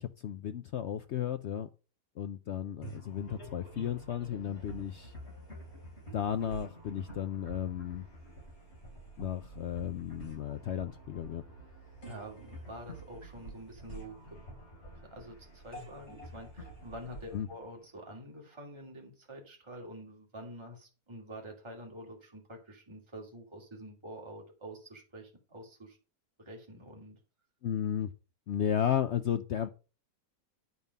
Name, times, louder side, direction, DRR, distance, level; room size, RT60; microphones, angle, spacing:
voice 1, 0.0-1.7 2.2-5.1 6.1-8.1 9.2-11.4 17.3-17.5 27.6-28.1 28.5-29.7, left 9 dB, 80° left, 0.6 m, -34 dB
sound 1, 2.8-18.5, right 1 dB, 40° left, 3.6 m, -48 dB
voice 2, 12.1-14.2 15.1-26.0 26.4-27.2, equal, 15° right, 2.3 m, -47 dB
9.6 x 5.4 x 5.4 m
omnidirectional pair, 1.8 m